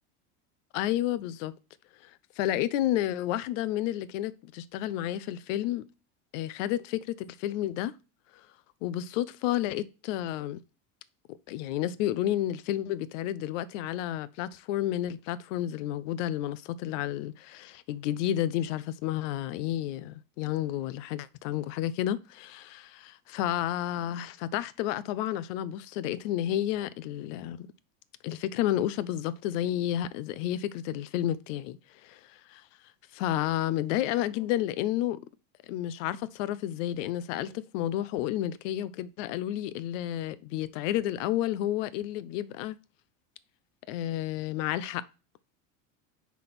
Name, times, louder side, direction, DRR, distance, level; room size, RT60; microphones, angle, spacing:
voice 1, 0.7-1.5 2.4-5.8 6.3-7.9 8.8-10.6 11.5-27.7 28.2-32.2 32.5-32.6 33.1-35.2 35.7-42.8 43.9-45.0, left 12 dB, 70° left, 0.7 m, -31 dB
5.9 x 3.6 x 5.8 m
supercardioid pair, 150°, 38 cm